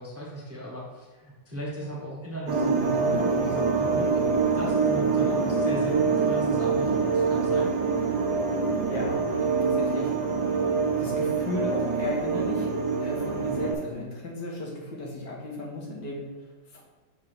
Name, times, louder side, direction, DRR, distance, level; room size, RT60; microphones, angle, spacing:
voice 1, 0.0-4.2 4.5-7.7, right 1 dB, 10° right, -3 dB, 1.0 m, -37 dB
sound 1, 2.5-13.7, right 4 dB, 65° right, 1.8 m, -25 dB
voice 2, 8.9-10.1 10.5-12.7 13.0-16.3 16.7-16.8, left 2 dB, 75° left, -3 dB, 2.1 m, -35 dB
6.6 x 3.4 x 6.1 m, 1.3 s
omnidirectional pair, 1.9 m